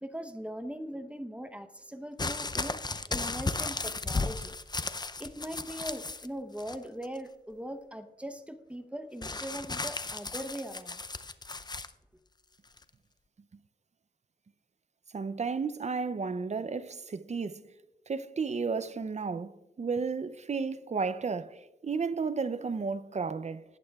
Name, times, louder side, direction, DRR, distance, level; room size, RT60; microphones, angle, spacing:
voice 1, 0.0-2.8 3.1-4.6 5.2-11.0, equal, 5° right, 0.8 m, -40 dB
sound 1, 2.2-6.3 6.6-7.2 9.2-11.9 12.8-12.9, left 3 dB, 25° left, 0.5 m, -35 dB
voice 2, 15.1-17.7 18.1-23.6, right 5 dB, 40° right, 0.5 m, -33 dB
19.0 x 8.6 x 2.3 m
wide cardioid pair, 90°, 18 cm